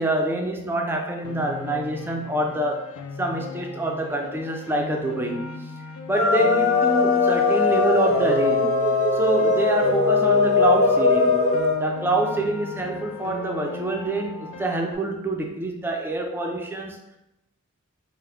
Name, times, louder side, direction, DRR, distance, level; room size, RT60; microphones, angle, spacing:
voice 1, 0.0-2.9 3.2-5.7 6.1-8.8 9.1-17.2, right 2 dB, 10° right, 2 dB, 0.3 m, -26 dB
Piano, 1.2-15.0, left 5 dB, 80° left, 0.4 m, -38 dB
sound 1, 6.1-11.8, left 3 dB, 35° left, 0.6 m, -20 dB
3.3 x 2.0 x 3.4 m, 0.86 s
head